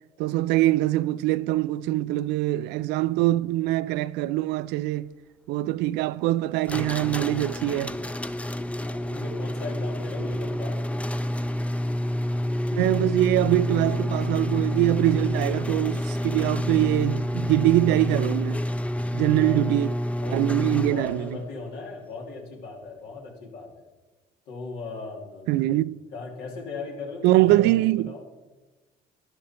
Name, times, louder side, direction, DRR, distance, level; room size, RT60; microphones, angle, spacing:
voice 1, 0.2-5.1 5.5-8.0 12.8-18.6 19.1-19.9 20.3-21.2 25.5-26.0 27.2-28.1, right 16 dB, 90° right, 0.4 m, -23 dB
sound 1, 6.7-21.3, equal, 10° left, 0.5 m, -28 dB
voice 2, 8.8-10.8 19.1-19.6 20.2-20.6 20.9-23.8 24.5-25.7 26.1-28.2, left 3 dB, 85° left, 3.0 m, -38 dB
13.0 x 11.0 x 4.4 m
cardioid pair, 110°, 17 cm